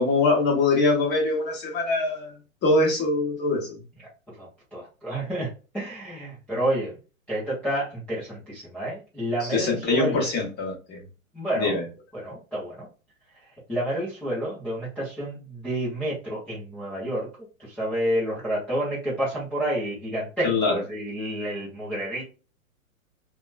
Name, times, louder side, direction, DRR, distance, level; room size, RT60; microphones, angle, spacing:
voice 1, 0.0-2.3 2.6-3.8 9.4-11.0 11.6-11.8 20.4-20.8, left 3 dB, 25° left, 1.0 m, -23 dB
voice 2, 4.4-5.5 5.7-6.9 7.3-10.3 11.3-11.8 12.1-12.9 13.7-17.3 17.6-22.2, right 1 dB, 5° left, 0.4 m, -29 dB
2.9 x 2.2 x 2.4 m
hypercardioid pair, 120°, 41 cm